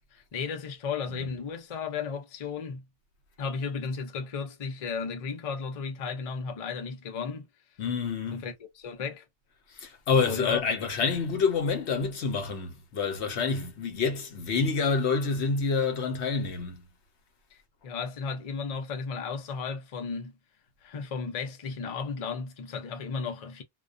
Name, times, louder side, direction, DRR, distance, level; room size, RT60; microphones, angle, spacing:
voice 1, 0.1-2.8 3.4-7.5 8.3-9.2 10.1-10.9 17.5-17.6 17.8-20.3 20.8-23.6, left 5 dB, 45° left, 0.5 m, -34 dB
voice 2, 7.8-8.4 9.7-16.9, left 5 dB, 75° left, 1.0 m, -28 dB
2.2 x 2.2 x 2.4 m
omnidirectional pair, 1.1 m